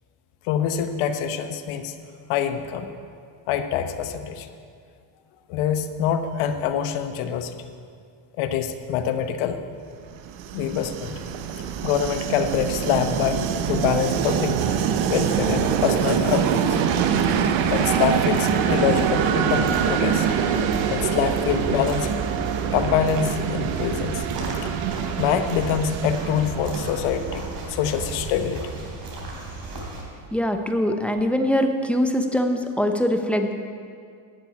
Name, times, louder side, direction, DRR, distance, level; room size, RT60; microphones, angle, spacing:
voice 1, 0.5-1.9 2.3-2.9 3.5-4.5 5.5-7.6 8.4-9.6 10.5-11.2 11.8-14.6 15.1-16.6 17.7-20.3 20.9-22.2 22.7-24.3 24.6-24.7 25.2-28.7, left 8 dB, 80° left, 8 dB, 1.2 m, -25 dB
Train, 10.1-27.9, right 8 dB, 70° right, 1.1 m, -24 dB
sound 1, 17.0-30.0, right 2 dB, 45° right, 3.4 m, -35 dB
voice 2, 30.3-33.5, equal, 5° left, 5 dB, 0.8 m, -22 dB
11.5 x 7.4 x 9.4 m, 2.2 s
cardioid pair, 135°, 49 cm